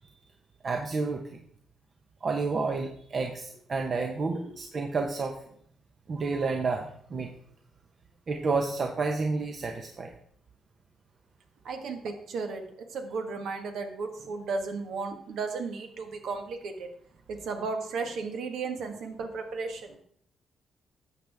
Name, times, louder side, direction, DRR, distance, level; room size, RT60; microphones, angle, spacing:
voice 1, 0.6-1.4 2.2-5.4 6.1-7.3 8.3-10.1, right 4 dB, 45° right, 3 dB, 0.9 m, -30 dB
voice 2, 11.6-12.6 12.9-16.9 17.3-20.0, right 4 dB, 75° right, 5 dB, 1.5 m, -34 dB
11.5 x 7.6 x 3.5 m, 0.62 s
cardioid pair, 90°, 0 cm